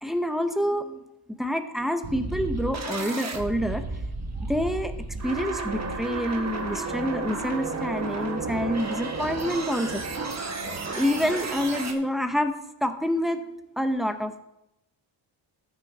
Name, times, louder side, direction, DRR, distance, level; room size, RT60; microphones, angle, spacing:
voice 1, 0.0-3.8 4.4-4.9 5.2-10.0 11.0-12.5 12.8-13.4 13.8-14.4, equal, ahead, 7 dB, 0.8 m, -27 dB
sound 1, 2.0-11.9, right 3 dB, 35° right, 1.2 m, -32 dB
13.5 x 6.0 x 4.0 m, 0.86 s
cardioid pair, 100°, 47 cm